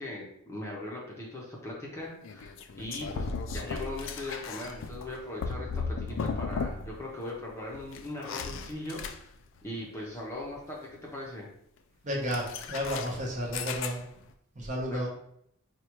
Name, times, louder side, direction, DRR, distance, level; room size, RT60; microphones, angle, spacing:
voice 1, 0.0-9.3 9.6-11.5 14.9-15.1, left 1 dB, 15° left, -4 dB, 0.7 m, -39 dB
sound 1, 2.2-7.1 7.3-9.6 12.2-14.3, left 5 dB, 60° left, 0.3 m, -36 dB
voice 2, 12.0-14.0 14.6-15.1, equal, 35° right, -2 dB, 0.8 m, -32 dB
4.6 x 2.3 x 2.9 m, 0.72 s
head